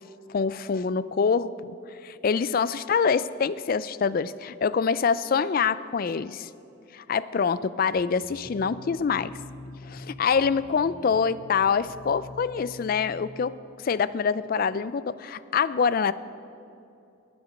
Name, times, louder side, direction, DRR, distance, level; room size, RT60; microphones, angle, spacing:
voice 1, 0.3-1.8 2.0-6.5 6.9-9.3 9.8-13.5 13.8-16.1, left 6 dB, 45° left, 16 dB, 0.3 m, -25 dB
sound 1, 7.9-13.3, left 2 dB, 90° left, 2.1 m, -45 dB
18.5 x 9.4 x 5.2 m, 2.7 s
head